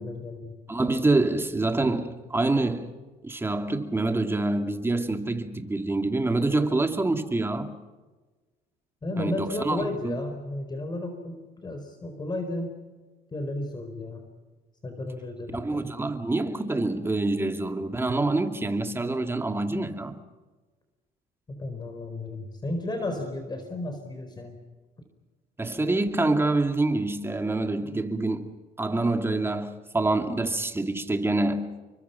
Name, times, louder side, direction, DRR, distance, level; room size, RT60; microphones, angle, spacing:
voice 1, 0.0-0.5 9.0-12.7 13.3-14.2 14.8-15.9 21.5-24.6, left 1 dB, 25° left, 4.5 m, -33 dB
voice 2, 0.7-2.9 3.2-7.8 9.2-10.2 15.5-20.2 25.6-28.5 28.8-31.7, right 2 dB, 15° right, 2.5 m, -26 dB
29.5 x 24.5 x 5.8 m
cardioid pair, 110°, 17 cm